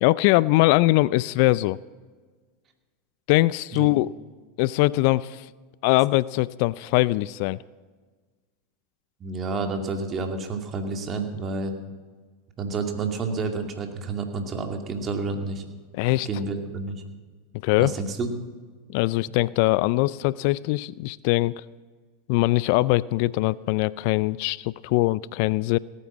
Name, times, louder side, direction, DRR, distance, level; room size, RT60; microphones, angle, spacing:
voice 1, 0.0-1.8 3.3-4.1 4.6-5.5 5.8-7.6 15.9-16.3 17.6-17.9 18.9-21.5 22.3-25.8, left 19 dB, 60° left, 21 dB, 0.3 m, -22 dB
voice 2, 9.2-11.7 12.6-15.6 16.2-17.0 17.8-18.3, right 3 dB, 35° right, 5 dB, 2.4 m, -29 dB
17.5 x 9.7 x 7.3 m, 1.4 s
hypercardioid pair, 95°, 0 cm